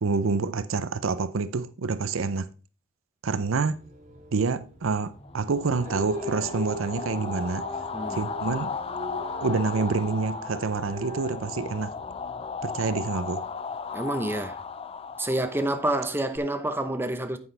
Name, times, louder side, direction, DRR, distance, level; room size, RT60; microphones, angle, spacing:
voice 1, 0.0-2.5 3.2-3.8 4.3-7.7 8.1-8.7 9.4-12.0 12.6-13.5, right 4 dB, 75° right, 0.6 m, -27 dB
sound 1, 3.3-12.2, right 1 dB, 40° right, 2.4 m, -39 dB
sound 2, 5.2-16.4, left 5 dB, 30° left, 0.4 m, -36 dB
voice 2, 7.9-8.2 13.9-14.6 15.2-17.4, right 1 dB, 10° right, 0.8 m, -28 dB
9.4 x 8.3 x 3.3 m
head